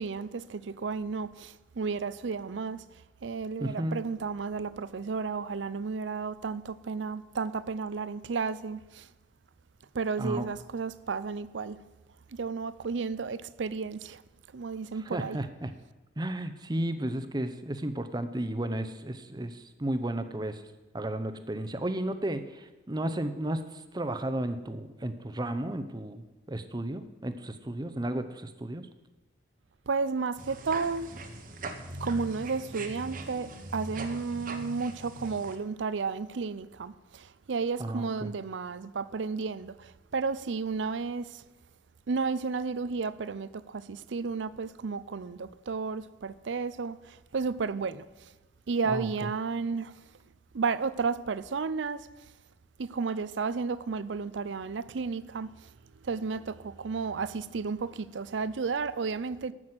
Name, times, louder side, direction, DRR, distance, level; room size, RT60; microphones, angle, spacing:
voice 1, 0.0-2.8 3.2-9.1 9.9-11.8 12.3-14.2 14.5-15.4 29.9-31.1 32.0-41.4 42.1-48.3 48.7-49.9 50.5-52.1 52.8-55.5 56.0-59.5, right 4 dB, 80° right, 0.5 m, -32 dB
voice 2, 3.6-4.0 10.2-10.4 15.0-15.7 16.2-20.6 20.9-28.9 37.8-38.3 48.8-49.3, right 1 dB, 20° right, 0.7 m, -33 dB
sound 1, 30.4-35.6, right 2 dB, 50° right, 1.1 m, -41 dB
13.5 x 6.2 x 7.8 m
head